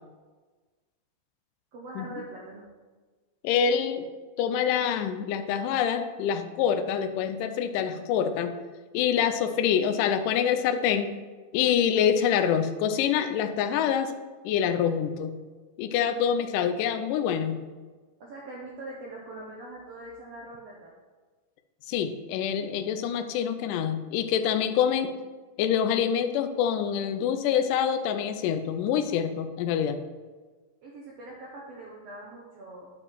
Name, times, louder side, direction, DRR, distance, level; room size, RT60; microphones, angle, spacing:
voice 1, 1.7-2.7 18.2-20.9 24.5-24.6 30.8-32.9, right 2 dB, 80° right, -3 dB, 1.4 m, -42 dB
voice 2, 3.4-4.1 4.4-8.5 8.9-11.1 11.5-14.1 14.4-15.3 15.8-17.6 21.9-25.1 25.6-30.0, left 8 dB, 80° left, 8 dB, 1.9 m, -26 dB
9.4 x 5.2 x 4.5 m, 1.4 s
omnidirectional pair, 4.3 m